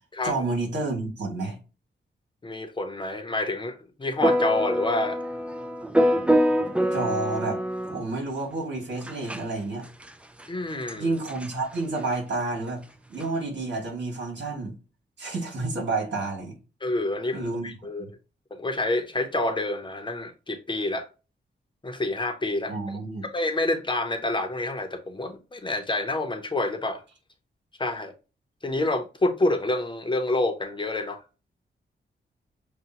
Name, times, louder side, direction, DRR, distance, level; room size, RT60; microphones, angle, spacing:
voice 1, 0.2-1.6 6.9-7.6 7.9-9.8 10.9-12.8 13.1-14.7 15.2-16.5 17.3-17.7 18.0-18.1 22.7-23.2, right 3 dB, 70° right, 2.4 m, -30 dB
voice 2, 2.4-5.2 10.5-11.1 16.8-18.1 18.5-21.1 21.8-23.0 23.3-27.0 27.8-28.1 28.6-31.2, left 2 dB, 25° left, 0.7 m, -28 dB
sound 1, 4.2-8.0 9.1-9.4 10.1-10.2 10.4-10.5 10.9-11.0 11.3-11.5 13.2-13.3, equal, 5° right, 0.4 m, -24 dB
6.7 x 2.2 x 2.9 m
wide cardioid pair, 135°, 19 cm